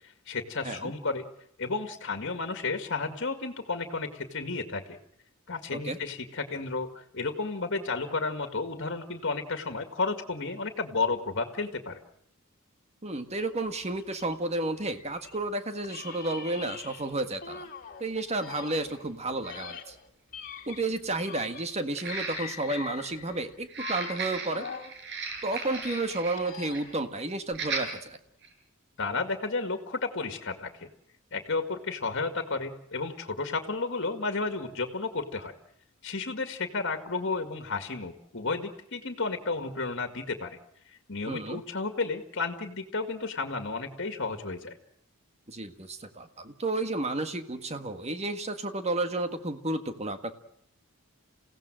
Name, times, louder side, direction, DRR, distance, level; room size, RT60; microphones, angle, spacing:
voice 1, 0.3-1.3 1.6-5.0 5.5-12.0 29.0-30.9 31.3-35.5 36.0-40.6 41.1-44.7, left 3 dB, 55° left, 7 dB, 2.1 m, -32 dB
voice 2, 13.0-17.7 18.0-19.9 20.7-24.7 25.4-28.2 41.2-41.6 45.5-50.3, right 2 dB, 30° right, 8 dB, 1.6 m, -32 dB
sound 1, 13.3-15.4 15.8-18.0 18.4-21.8 22.0-25.0 25.3-27.0, left 7 dB, 40° left, 2.3 m, -44 dB
sound 2, 17.2-17.3 18.3-18.4 18.8-18.9 21.9-22.8 23.6-26.4 26.7-26.9 27.5-27.9 28.4-28.5, right 4 dB, 55° right, 5.2 m, -36 dB
28.5 x 17.0 x 7.6 m, 0.72 s
head